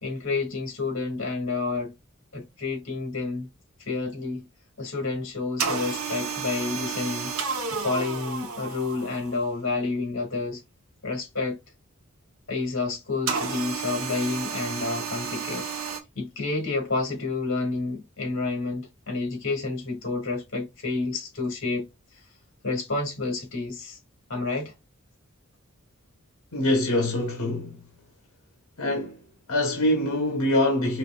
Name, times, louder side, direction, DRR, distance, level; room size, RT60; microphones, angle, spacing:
voice 1, 0.0-1.9 2.3-3.5 3.8-4.4 4.8-7.3 7.7-10.6 11.0-11.6 12.5-15.7 16.2-21.9 22.6-24.0 24.3-24.7, left 3 dB, 60° left, 2.0 m, -29 dB
sound 1, 5.6-9.5 13.3-16.0, right 5 dB, 75° right, 0.8 m, -31 dB
voice 2, 26.5-27.8 28.8-29.2 29.5-31.0, left 1 dB, 75° left, 1.0 m, -24 dB
4.9 x 3.1 x 2.3 m
head